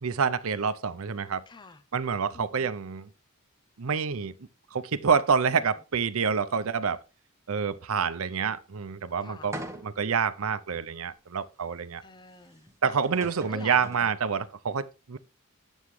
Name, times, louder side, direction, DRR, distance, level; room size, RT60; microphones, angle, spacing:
voice 1, 0.0-1.4 1.9-3.1 3.8-4.3 4.7-7.0 7.5-9.6 9.8-12.0 12.8-15.2, right 6 dB, 75° right, 0.6 m, -27 dB
voice 2, 1.5-1.8 2.3-2.8 5.4-5.6 9.2-9.5 12.0-12.7 13.5-13.8, left 3 dB, 20° left, 0.6 m, -47 dB
sound 1, 9.5-10.1 10.8-10.9 12.7-12.8 13.0-14.2, right 1 dB, 15° right, 1.2 m, -40 dB
9.5 x 7.2 x 3.2 m
head